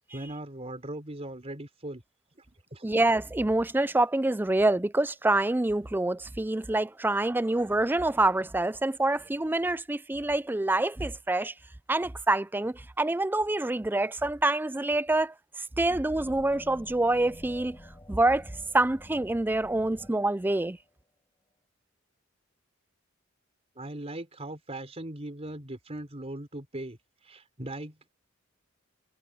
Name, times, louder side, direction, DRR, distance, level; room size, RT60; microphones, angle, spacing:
voice 1, 0.1-2.0 2.4-2.5 2.7-2.8 23.8-27.0 27.2-28.1, right 1 dB, 30° right, 4.0 m, -39 dB
voice 2, 2.8-11.5 11.9-15.3 15.8-17.8 18.1-20.8, right 2 dB, 10° right, 0.4 m, -26 dB
sound 1, 16.2-20.9, left 1 dB, 20° left, 4.7 m, -49 dB
head